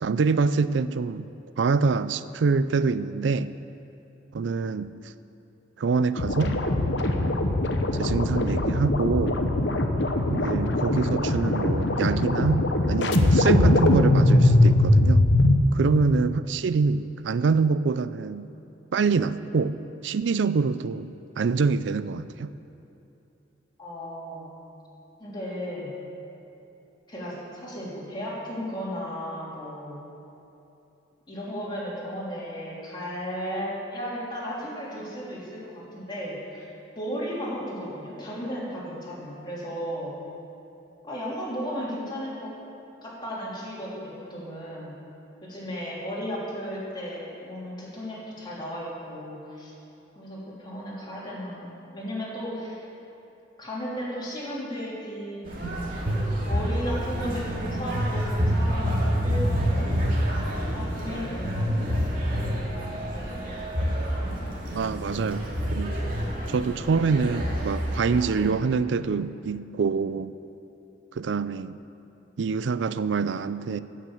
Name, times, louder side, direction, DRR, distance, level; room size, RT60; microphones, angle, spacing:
voice 1, 0.0-1.2 1.6-3.5 4.3-5.0 5.8-6.6 7.0-7.4 7.9-9.4 10.3-15.3 15.7-18.5 18.9-19.8 20.0-21.1 21.4-22.5 64.7-65.4 65.7-66.0 66.5-70.3 71.1-71.8 72.4-73.8, right 4 dB, 70° right, 14 dB, 0.4 m, -25 dB
sound 1, 6.2-15.6, left 1 dB, 70° left, 0.9 m, -21 dB
voice 2, 23.8-24.5 25.2-25.9 27.1-30.0 31.3-40.1 41.0-42.5 43.0-44.9 45.4-49.7 50.1-52.8 53.6-55.6 55.9-60.2 60.7-62.0 62.3-62.7 63.1-63.4, equal, 25° left, -7 dB, 3.4 m, -35 dB
sound 2, 55.4-68.5, equal, 50° right, 2.4 m, -28 dB
15.0 x 6.6 x 7.7 m, 2.9 s
head